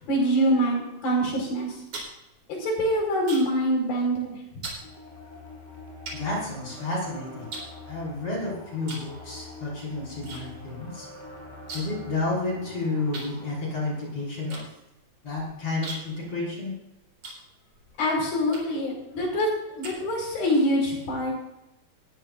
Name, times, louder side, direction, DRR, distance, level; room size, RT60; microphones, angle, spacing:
voice 1, 0.0-1.8 2.6-4.7 18.0-21.3, equal, 80° left, 0 dB, 6.9 m, -25 dB
sound 1, 1.6-3.7 3.9-4.2 4.6-4.9 5.5-5.6 6.1-7.0 7.5-8.4 8.8-9.1 9.4-10.4 10.7-10.8 11.0-12.1 12.3-12.4 13.1-17.9 18.5-18.9 19.4-20.5, right 3 dB, 40° right, 4.7 m, -41 dB
sound 2, 4.8-14.1, left 2 dB, 5° left, 5.5 m, -45 dB
voice 2, 6.1-7.5 7.9-11.1 11.7-14.6 15.2-16.7, left 2 dB, 40° left, -4 dB, 6.5 m, -31 dB
19.0 x 14.5 x 2.6 m, 0.89 s
omnidirectional pair, 4.1 m